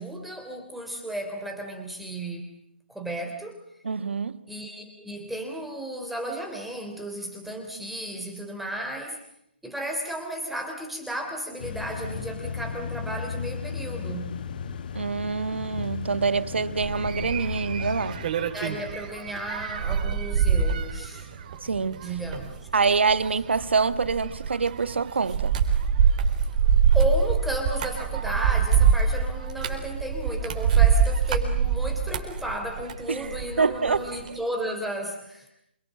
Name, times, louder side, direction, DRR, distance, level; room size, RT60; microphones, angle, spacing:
voice 1, 0.0-2.5 2.9-3.6 4.5-9.2 9.6-14.4 18.5-21.3 22.0-22.7 26.9-35.5, right 1 dB, ahead, 3.4 m, -34 dB
voice 2, 3.8-4.4 14.9-18.3 21.6-22.0 22.7-25.6 33.1-33.3 33.6-34.0, right 5 dB, 80° right, 1.8 m, -25 dB
sound 1, 11.6-18.3, left 6 dB, 50° left, 1.8 m, -35 dB
sound 2, 16.8-33.5 33.9-34.3, right 7 dB, 40° right, 4.1 m, -24 dB
28.0 x 24.0 x 7.6 m
hypercardioid pair, 155°, 6 cm